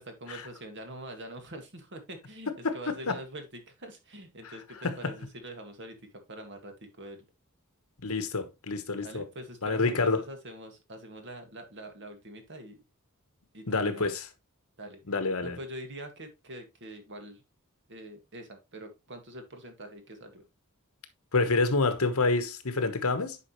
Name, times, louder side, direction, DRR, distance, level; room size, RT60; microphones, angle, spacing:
voice 1, 0.0-7.2 9.0-12.8 13.5-14.1 14.8-15.0 15.4-17.4 17.9-20.4, right 1 dB, 55° right, 2.0 m, -44 dB
voice 2, 2.5-3.2 4.4-5.1 8.0-9.3 9.6-10.2 13.7-14.3 15.1-15.6 21.3-23.4, left 3 dB, 70° left, 1.2 m, -28 dB
9.8 x 5.2 x 3.1 m
head